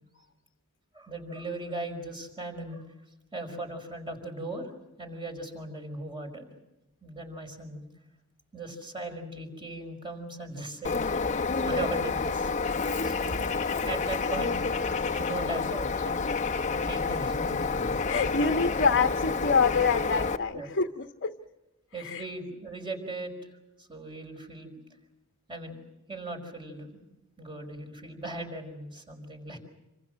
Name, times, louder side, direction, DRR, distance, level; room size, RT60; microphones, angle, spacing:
voice 1, 0.9-2.9 3.3-4.7 5.0-6.5 7.0-7.8 8.5-11.0 11.7-12.5 13.0-13.4 13.9-14.6 15.2-16.3 16.7-17.7 20.4-20.7 21.9-23.5 23.8-24.7 25.5-25.8 26.1-27.0 27.4-29.6, right 2 dB, 20° right, 4 dB, 5.1 m, -38 dB
Bird, 10.8-20.4, left 4 dB, 35° left, 1.0 m, -29 dB
voice 2, 17.9-21.3 22.0-22.2, left 5 dB, 50° left, 5 dB, 1.2 m, -26 dB
27.5 x 26.0 x 6.4 m, 0.95 s
head